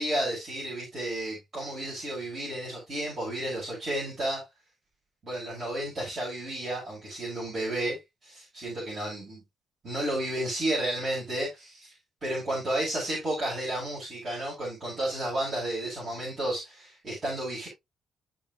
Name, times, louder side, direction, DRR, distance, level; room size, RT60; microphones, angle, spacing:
voice 1, 0.0-4.4 5.2-9.4 9.8-11.9 12.2-17.7, right 1 dB, 40° right, 6.2 m, -32 dB
14.5 x 5.1 x 2.5 m
cardioid pair, 90°, 0 cm